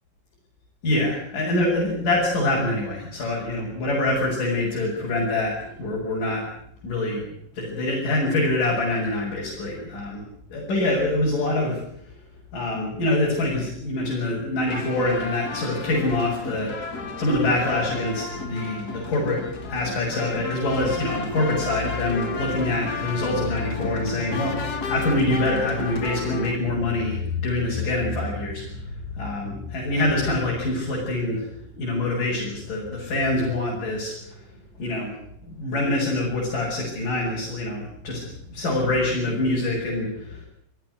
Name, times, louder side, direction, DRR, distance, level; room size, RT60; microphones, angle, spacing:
voice 1, 0.8-6.4 6.8-10.2 10.5-11.8 12.5-16.9 17.2-31.5 31.7-34.4 34.8-35.2 35.5-38.2 38.5-40.5, left 2 dB, 70° left, -3 dB, 8.7 m, -25 dB
sound 1, 14.7-26.6, left 4 dB, 30° left, 2.4 m, -33 dB
29.0 x 17.0 x 8.1 m, 0.68 s
omnidirectional pair, 3.9 m